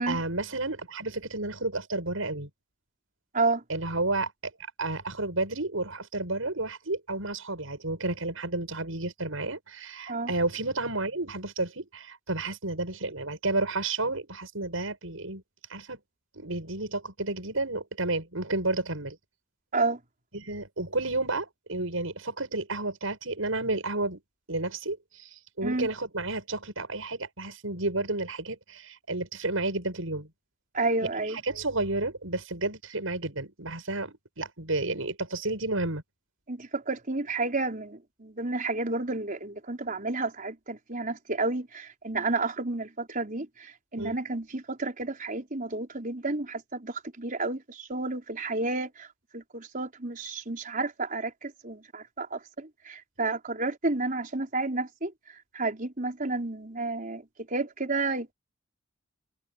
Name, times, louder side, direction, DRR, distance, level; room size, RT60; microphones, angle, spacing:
voice 1, 0.0-2.5 3.7-4.5 4.8-15.4 15.7-16.0 16.3-19.2 20.3-24.2 24.5-30.3 31.2-36.0 44.0-44.2, right 2 dB, 80° right, 7.1 m, -31 dB
voice 2, 30.7-31.4 36.5-49.1 49.3-55.1 55.5-57.2 57.5-58.3, right 3 dB, 40° right, 4.8 m, -31 dB
open air
head